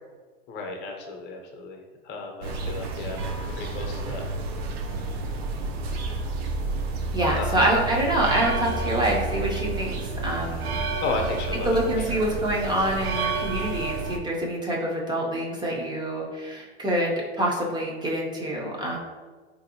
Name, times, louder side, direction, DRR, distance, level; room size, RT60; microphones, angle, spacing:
voice 1, 0.5-3.2 3.5-4.2 7.0-7.9 10.2-10.5 11.0-12.3, left 3 dB, 35° left, 2 dB, 0.7 m, -34 dB
sound 1, 2.4-14.2, right 3 dB, 70° right, 0.6 m, -30 dB
voice 2, 7.1-10.7 11.7-19.0, right 1 dB, 15° right, -1 dB, 0.5 m, -26 dB
4.0 x 2.6 x 2.8 m, 1.4 s
hypercardioid pair, 115°, 32 cm